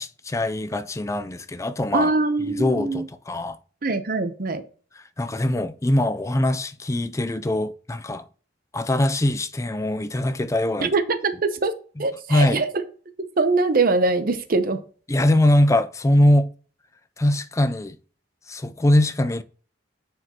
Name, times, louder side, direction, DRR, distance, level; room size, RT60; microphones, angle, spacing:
voice 1, 0.0-2.1 2.5-3.6 4.9-8.2 8.7-10.9 12.0-12.6 15.1-16.5 17.2-18.0 18.5-19.4, left 1 dB, 15° left, 0.4 m, -22 dB
voice 2, 1.9-3.0 3.8-4.6 10.8-11.7 12.0-12.7 13.4-14.8, right 3 dB, 50° right, 0.8 m, -22 dB
9.1 x 4.9 x 2.9 m
head